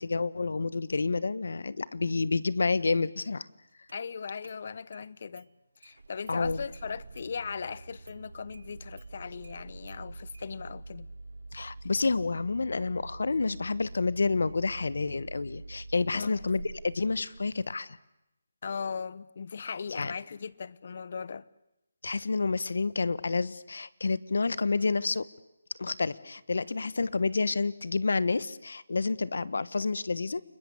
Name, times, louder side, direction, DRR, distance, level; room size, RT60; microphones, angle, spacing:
voice 1, 0.0-3.5 6.3-6.6 11.5-18.0 19.9-20.1 22.0-25.3 25.8-30.4, left 4 dB, 70° left, 1.2 m, -29 dB
voice 2, 3.9-5.5 5.8-11.1 16.1-16.5 18.6-21.5, left 6 dB, 50° left, 0.9 m, -38 dB
Engine starting, 3.9-4.0 4.4-5.0 5.4-5.5 5.8-17.7, right 2 dB, 80° right, 1.1 m, -45 dB
30.0 x 21.0 x 8.3 m
figure-of-eight pair, 165°, 0 cm